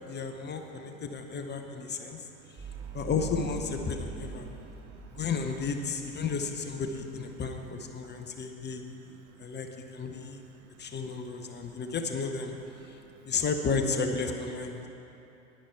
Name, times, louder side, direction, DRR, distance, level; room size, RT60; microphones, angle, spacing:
voice 1, 0.1-2.3 2.9-4.5 5.1-8.8 9.4-10.4 10.8-12.5 12.9-13.0 13.2-14.9, left 5 dB, 20° left, 5 dB, 0.8 m, -33 dB
voice 2, 2.0-2.9 4.5-4.9 7.4-7.5 8.0-8.7 9.0-9.5 10.1-10.2 10.5-10.9 11.5-11.8 12.8-13.2 14.7-14.9, right 9 dB, 65° right, 8 dB, 0.9 m, -58 dB
sound 1, 2.6-7.5, right 5 dB, 25° right, 2.6 m, -44 dB
10.5 x 10.5 x 4.7 m, 2.9 s
hypercardioid pair, 90°, 47 cm